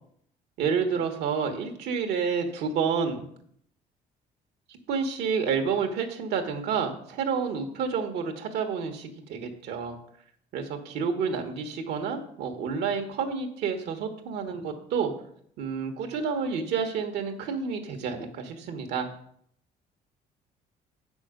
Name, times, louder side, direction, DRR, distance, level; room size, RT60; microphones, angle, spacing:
voice 1, 0.6-3.3 4.7-10.0 10.5-15.1 15.6-19.1, right 6 dB, 80° right, 5 dB, 1.5 m, -29 dB
7.9 x 6.2 x 5.1 m, 0.66 s
cardioid pair, 110°, 17 cm